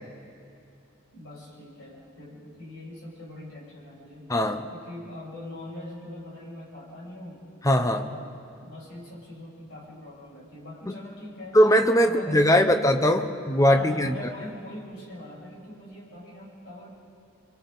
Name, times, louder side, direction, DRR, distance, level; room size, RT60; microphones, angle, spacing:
voice 1, 1.1-4.3 4.7-7.5 7.9-11.6 12.0-12.8 13.6-17.0, left 1 dB, 60° left, -5 dB, 6.4 m, -42 dB
voice 2, 4.3-4.6 7.6-8.0 10.9-11.0 11.5-14.1, equal, 15° left, 7 dB, 0.8 m, -20 dB
28.0 x 25.0 x 4.0 m, 2.5 s
head